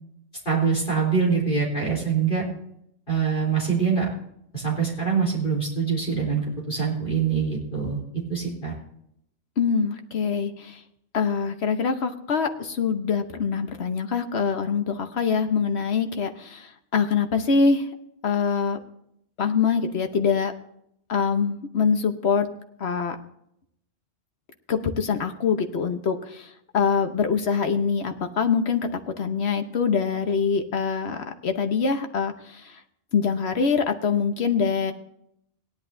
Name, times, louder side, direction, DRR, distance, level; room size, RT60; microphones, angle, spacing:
voice 1, 0.5-2.5 3.1-4.1 4.5-8.7, right 6 dB, 45° left, -4 dB, 3.9 m, -24 dB
voice 2, 9.6-10.8 11.1-17.9 18.2-18.8 19.4-20.5 21.1-22.5 22.8-23.2 24.7-31.2 31.4-32.8 33.1-34.9, left 5 dB, 65° left, 7 dB, 1.2 m, -24 dB
17.5 x 10.5 x 2.7 m, 0.74 s
omnidirectional pair, 1.2 m